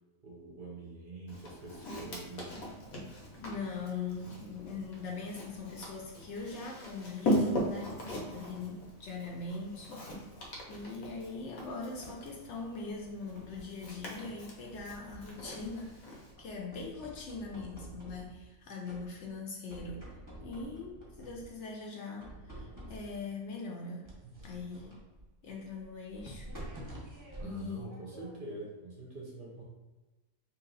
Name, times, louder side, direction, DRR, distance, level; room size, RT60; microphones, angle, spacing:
voice 1, 0.2-2.5 24.4-24.5 27.4-29.6, right 2 dB, 50° right, -4 dB, 0.7 m, -45 dB
Walk footsteps, 1.3-16.3, equal, 90° left, 1.3 m, -39 dB
voice 2, 3.4-10.0 10.7-20.0 20.4-24.1 24.4-24.9 25.4-26.5 27.4-27.9, left 4 dB, 65° left, 0 dB, 0.8 m, -41 dB
sound 1, 12.9-14.1 14.6-16.0 16.4-18.5 18.8-19.4 19.7-21.6 22.2-23.3 24.0-28.5, right 1 dB, 15° right, 0.9 m, -49 dB
3.1 x 2.8 x 3.9 m, 1.2 s
omnidirectional pair, 1.4 m